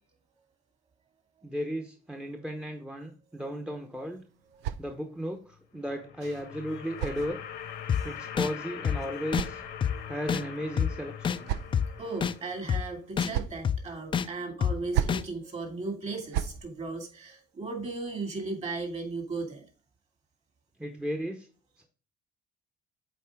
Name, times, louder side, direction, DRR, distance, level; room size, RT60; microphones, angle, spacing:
voice 1, 1.4-4.2 4.8-7.4 8.0-9.6 10.1-11.5 20.8-21.5 21.8-21.9, equal, 5° right, 3 dB, 0.8 m, -35 dB
sound 1, 3.7-5.4 6.4-7.8 8.8-10.1 11.0-12.0 12.9-13.7 14.7-15.3 16.1-16.6, right 10 dB, 90° right, 0.5 m, -36 dB
sound 2, 5.7-12.9, left 9 dB, 80° left, 1.2 m, -42 dB
sound 3, 7.9-8.0 8.4-8.5 8.8-9.0 9.3-9.5 9.8-9.9 10.3-10.4 10.8-10.9 11.2-11.4 11.7-11.9 12.2-12.3 12.7-12.8 13.2-13.3 13.6-13.8 14.1-14.3 14.6-14.7 15.1-15.2, left 8 dB, 30° left, 0.4 m, -26 dB
voice 2, 9.0-9.4 9.9-10.2 11.8-19.6, right 3 dB, 40° right, 4 dB, 2.3 m, -37 dB
7.6 x 4.3 x 3.5 m, 0.39 s
cardioid pair, 110°, 17 cm